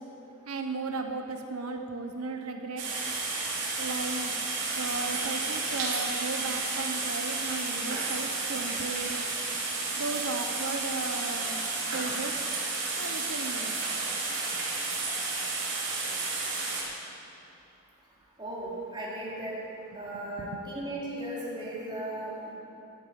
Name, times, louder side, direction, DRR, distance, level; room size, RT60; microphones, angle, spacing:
voice 1, 0.5-2.8 3.8-4.3 4.7-9.1 10.0-11.6 11.9-12.3 13.0-13.8 20.4-20.7, right 3 dB, 90° right, 5 dB, 0.9 m, -35 dB
sound 1, 2.8-16.8, right 3 dB, 60° right, 4.0 m, -32 dB
voice 2, 18.4-19.5 19.9-22.5, right 1 dB, 20° right, -6 dB, 3.6 m, -36 dB
14.0 x 11.0 x 7.5 m, 2.7 s
head